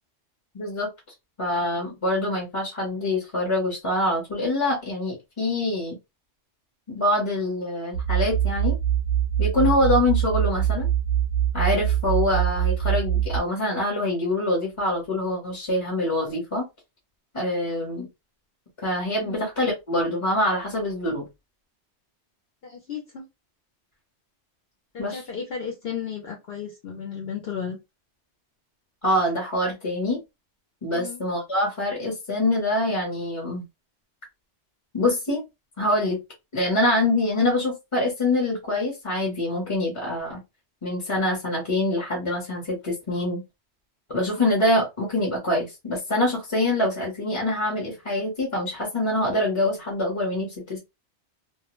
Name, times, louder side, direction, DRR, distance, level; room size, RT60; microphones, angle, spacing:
voice 1, 0.5-0.9 1.4-6.0 6.9-8.8 9.4-10.9 11.5-16.7 17.3-18.1 18.8-21.2 25.0-25.2 29.0-30.2 30.8-33.6 34.9-35.4 35.8-36.2 36.5-40.4 40.8-43.4 44.1-50.8, left 1 dB, 30° left, -2 dB, 0.8 m, -25 dB
sound 1, 7.9-13.4, right 10 dB, 65° right, 0.7 m, -23 dB
voice 2, 22.6-23.2 24.9-27.8 30.9-31.2, left 7 dB, 60° left, 0 dB, 0.8 m, -34 dB
2.3 x 2.1 x 3.0 m, 0.23 s
omnidirectional pair, 1.2 m